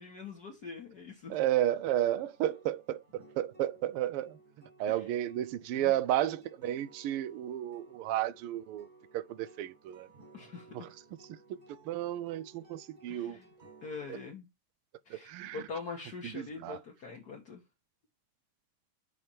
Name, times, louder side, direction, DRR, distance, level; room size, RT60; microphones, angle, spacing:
voice 1, 0.0-1.4 4.9-5.0 5.7-5.9 10.3-10.9 13.1-13.5 13.8-14.5 15.1-17.6, left 4 dB, 50° left, 1.6 m, -44 dB
voice 2, 1.3-4.4 4.8-8.9 9.1-10.1 10.7-10.9 11.8-13.4 14.1-14.2 15.1-15.6 16.2-16.8, right 12 dB, 85° right, 1.5 m, -32 dB
sound 1, 2.0-14.3, right 3 dB, 25° right, 1.3 m, -58 dB
9.1 x 3.4 x 4.4 m
omnidirectional pair, 2.4 m